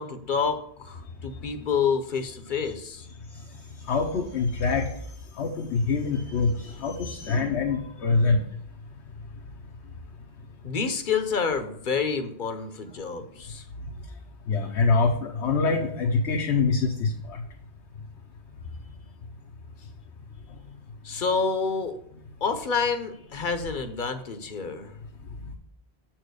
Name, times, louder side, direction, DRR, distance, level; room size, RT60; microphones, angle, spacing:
voice 1, 0.0-3.0 10.6-13.6 21.0-22.0 22.4-24.9, left 5 dB, 55° left, 8 dB, 0.8 m, -28 dB
voice 2, 3.9-4.9 5.4-8.4 14.5-17.1, left 4 dB, 85° left, 0 dB, 1.1 m, -24 dB
7.4 x 4.6 x 6.4 m, 0.70 s
omnidirectional pair, 1.1 m